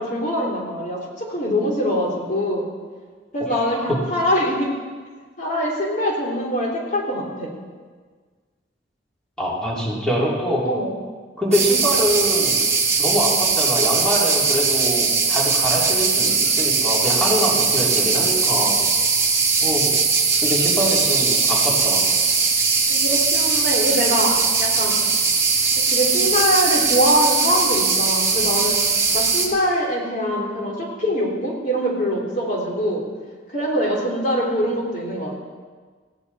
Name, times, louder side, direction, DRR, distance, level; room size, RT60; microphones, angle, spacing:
voice 1, 0.0-2.7 3.3-4.7 5.4-7.5 10.6-10.9 22.9-25.0 25.8-28.8 29.1-33.0 33.5-35.4, equal, 45° left, -3 dB, 3.3 m, -23 dB
voice 2, 3.4-4.0 9.4-10.7 11.4-12.7 13.0-18.8 19.6-19.9 20.4-22.0, equal, 5° left, -5 dB, 3.3 m, -24 dB
sound 1, 11.5-29.5, right 4 dB, 15° right, 1.9 m, -20 dB
19.5 x 16.0 x 4.2 m, 1.5 s
head